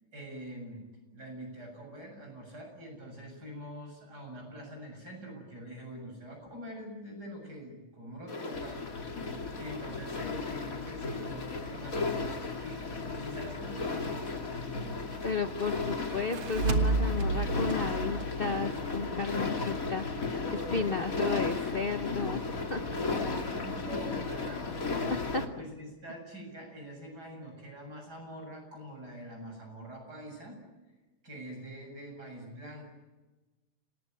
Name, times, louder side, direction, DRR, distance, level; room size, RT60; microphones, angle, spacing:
voice 1, 0.1-14.9 20.4-21.0 22.9-25.1 25.6-30.6 31.2-32.8, right 1 dB, 45° right, 2 dB, 8.1 m, -45 dB
sound 1, 8.3-25.4, left 3 dB, 40° left, 2.6 m, -35 dB
voice 2, 15.2-20.3 20.7-22.8 23.3-23.4 25.3-25.4, left 4 dB, 85° left, 8 dB, 0.5 m, -33 dB
sound 2, 16.1-19.4, right 3 dB, 75° right, 2.6 m, -31 dB
28.0 x 19.0 x 9.2 m, 1.2 s
omnidirectional pair, 2.4 m